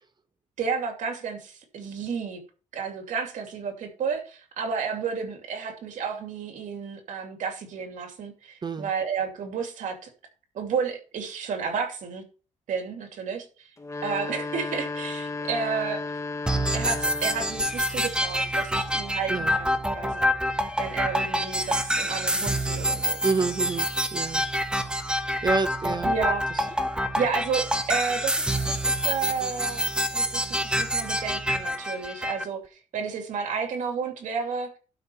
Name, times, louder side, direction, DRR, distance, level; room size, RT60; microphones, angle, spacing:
voice 1, 0.6-2.4 2.7-10.1 10.5-12.3 12.7-13.7 14.0-16.0 16.7-20.3 20.8-23.2 26.0-26.7 27.1-34.7, right 6 dB, 80° right, 2.7 m, -32 dB
sound 1, 13.8-17.8, left 3 dB, 25° left, 1.6 m, -34 dB
sound 2, 16.5-32.4, equal, 5° right, 1.2 m, -27 dB
voice 2, 23.2-24.4 25.4-26.1 26.5-26.6, right 4 dB, 35° right, 1.0 m, -28 dB
12.0 x 4.2 x 6.9 m
cardioid pair, 115°, 13 cm